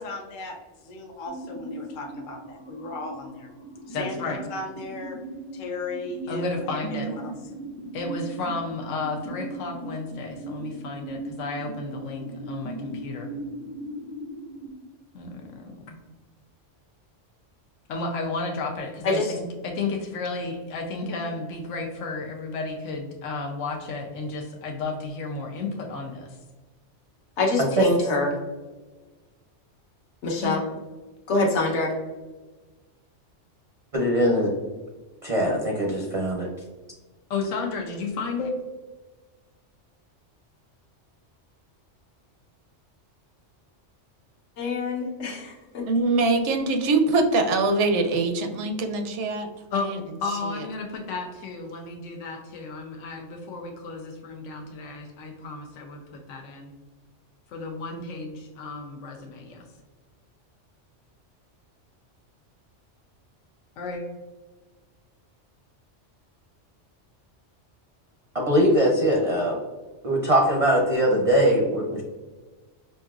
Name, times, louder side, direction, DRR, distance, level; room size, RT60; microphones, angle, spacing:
voice 1, 0.0-3.5 3.9-5.2 5.5-7.3, left 2 dB, 55° left, 1 dB, 0.6 m, -36 dB
sound 1, 1.3-14.7, right 2 dB, 20° left, 0.4 m, -38 dB
voice 2, 3.9-4.4 6.3-7.1 7.9-13.3 15.1-16.0 17.9-26.4 30.2-30.6 37.3-38.5 49.7-49.9 50.2-56.7 57.5-59.7 63.8-64.0, left 3 dB, 85° left, 2 dB, 1.0 m, -33 dB
voice 3, 27.4-28.3 30.2-30.6 31.3-31.9 44.6-45.9, left 2 dB, 70° left, 0 dB, 1.1 m, -25 dB
voice 4, 33.9-34.5 35.2-36.5 68.3-69.6 70.0-72.0, equal, 40° right, 0 dB, 0.5 m, -21 dB
voice 5, 45.9-49.5 49.8-50.0 50.5-50.6, right 3 dB, 75° right, 5 dB, 0.9 m, -23 dB
5.3 x 2.7 x 2.3 m, 1.2 s
omnidirectional pair, 1.2 m